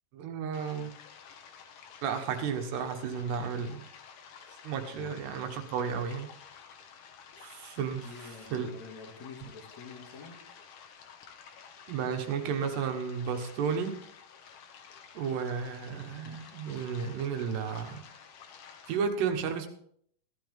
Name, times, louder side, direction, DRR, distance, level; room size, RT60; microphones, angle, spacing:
voice 1, 0.1-1.0 2.0-3.9 4.6-6.3 7.4-8.1 8.5-8.7 9.4-9.5 11.9-14.0 15.1-18.0 18.9-19.7, right 6 dB, 85° right, 5 dB, 3.4 m, -33 dB
sound 1, 0.5-19.0, left 7 dB, 65° left, 2.3 m, -52 dB
voice 2, 8.0-10.4, left 5 dB, 50° left, -2 dB, 3.0 m, -47 dB
15.0 x 12.0 x 3.5 m, 0.66 s
omnidirectional pair, 4.7 m